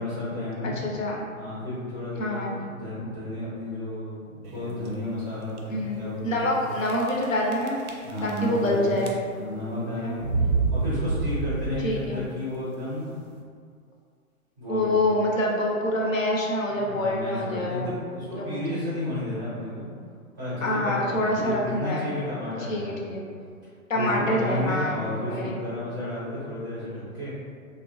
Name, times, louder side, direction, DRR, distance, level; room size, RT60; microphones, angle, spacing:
voice 1, 0.0-0.7 1.3-6.4 8.0-9.0 9.3-10.3 10.7-13.2 14.6-15.0 16.7-19.9 20.4-23.2 23.9-27.3, left 1 dB, 15° right, -12 dB, 0.5 m, -32 dB
voice 2, 0.6-1.2 2.2-2.5 5.7-7.8 8.2-9.1 10.0-10.2 11.8-12.2 14.7-17.9 18.4-18.8 20.6-22.1 22.7-23.2 23.9-25.6, left 1 dB, 65° left, -2 dB, 0.6 m, -26 dB
sound 1, 4.4-4.9 5.5-5.6 5.8-5.9 6.8-7.2 7.5-8.7 9.0-9.5 10.2-12.1, right 4 dB, 85° right, 0.6 m, -28 dB
2.9 x 2.0 x 2.7 m, 2.1 s
figure-of-eight pair, 125°, 43 cm